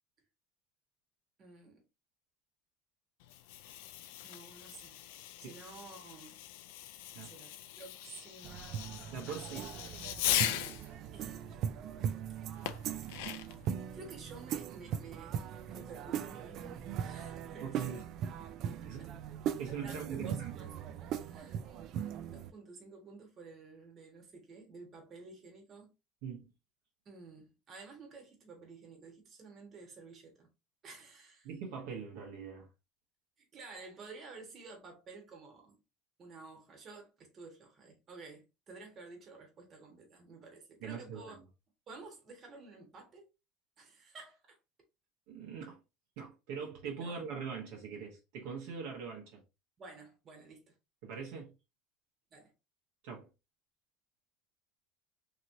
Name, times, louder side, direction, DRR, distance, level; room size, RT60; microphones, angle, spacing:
voice 1, 1.4-1.8 4.2-5.0 5.4-6.4 7.1-9.7 11.1-11.8 13.3-13.6 13.9-18.1 18.8-18.9 19.7-21.6 22.2-25.9 27.0-30.5 30.8-31.5 33.4-35.8 36.2-41.4 41.9-43.3 43.8-44.6 47.0-47.2 49.8-50.7 52.3-52.5, right 3 dB, 35° right, 1.4 m, -52 dB
Fireworks, 3.2-10.9 12.7-13.7, left 12 dB, 85° left, 0.3 m, -39 dB
sound 1, 8.4-22.5, right 9 dB, 55° right, 0.3 m, -40 dB
voice 2, 9.1-9.7 17.6-18.0 18.6-19.2 19.6-20.6 26.2-26.5 31.4-32.7 40.8-41.3 45.3-45.8 46.2-49.4 51.0-51.5 53.0-53.3, right 6 dB, 75° right, 1.2 m, -42 dB
3.0 x 2.8 x 2.6 m
supercardioid pair, 120°, 0 cm